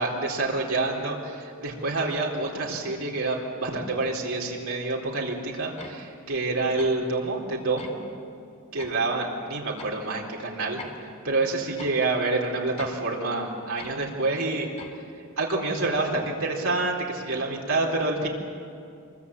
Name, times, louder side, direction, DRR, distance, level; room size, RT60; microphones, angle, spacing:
voice 1, 0.0-8.0 8.7-10.8 11.2-14.7 15.4-18.3, right 3 dB, 85° right, -2 dB, 4.0 m, -27 dB
sound 1, 5.8-6.0 6.8-7.0 7.8-8.0 8.8-9.0 9.8-10.0 10.8-11.0 11.8-12.0 12.8-13.0 13.8-14.0 14.8-15.0, left 3 dB, 35° left, 2.8 m, -42 dB
26.5 x 23.5 x 8.4 m, 2.4 s
head